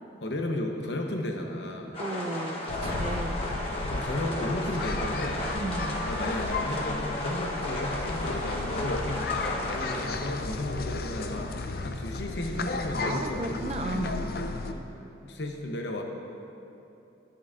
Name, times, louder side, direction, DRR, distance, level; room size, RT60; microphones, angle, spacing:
voice 1, 0.2-1.9 2.8-3.1 3.7-5.4 6.1-13.6 14.5-14.9 15.2-16.0, left 1 dB, 70° left, 2 dB, 0.8 m, -34 dB
sound 1, 1.9-10.1, left 1 dB, 30° left, 0.9 m, -34 dB
voice 2, 2.0-3.4 4.3-4.4 5.5-6.0 13.0-14.3, right 2 dB, 35° right, 4 dB, 0.5 m, -34 dB
sound 2, 2.7-14.7, left 3 dB, 55° left, 0.4 m, -34 dB
11.5 x 10.0 x 2.5 m, 2.8 s
head